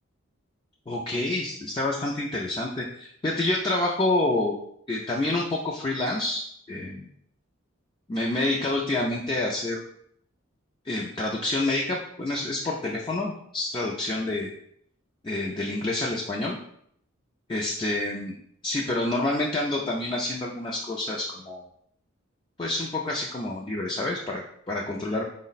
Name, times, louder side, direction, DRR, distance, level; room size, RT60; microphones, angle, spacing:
voice 1, 0.9-4.6 4.9-6.4 6.7-7.1 8.1-9.8 10.8-14.5 15.2-16.6 17.5-18.3 18.6-21.6 22.6-25.2, left 2 dB, 25° left, -3 dB, 0.3 m, -28 dB
4.5 x 2.1 x 3.9 m, 0.68 s
head